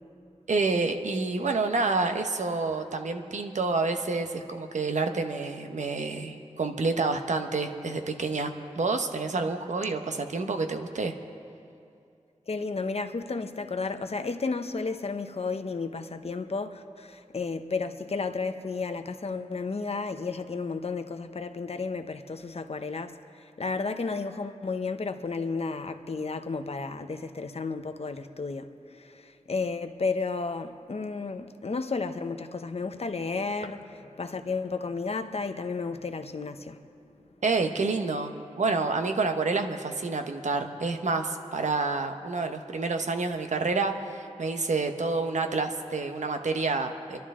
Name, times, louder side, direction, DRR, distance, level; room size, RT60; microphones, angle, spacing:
voice 1, 0.5-11.1 37.4-47.2, right 3 dB, 80° right, 1.0 m, -28 dB
voice 2, 12.5-36.8, left 4 dB, 55° left, 0.9 m, -33 dB
30.0 x 12.0 x 3.7 m
wide cardioid pair, 60°, 12 cm